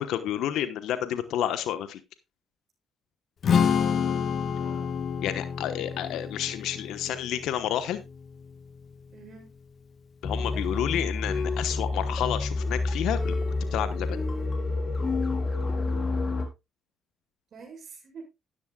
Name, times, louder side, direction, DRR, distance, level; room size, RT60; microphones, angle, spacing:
voice 1, 0.0-2.0 5.2-8.0 10.2-13.4 13.7-14.2, left 11 dB, 75° left, 1.1 m, -30 dB
Strum, 3.4-9.7, left 7 dB, 55° left, 1.3 m, -29 dB
voice 2, 4.6-5.0 9.1-9.5 10.7-11.0 17.5-18.2, right 4 dB, 55° right, 6.5 m, -47 dB
sound 1, 10.2-16.5, left 3 dB, 40° left, 3.7 m, -28 dB
13.0 x 10.5 x 2.3 m
supercardioid pair, 65°, 0 cm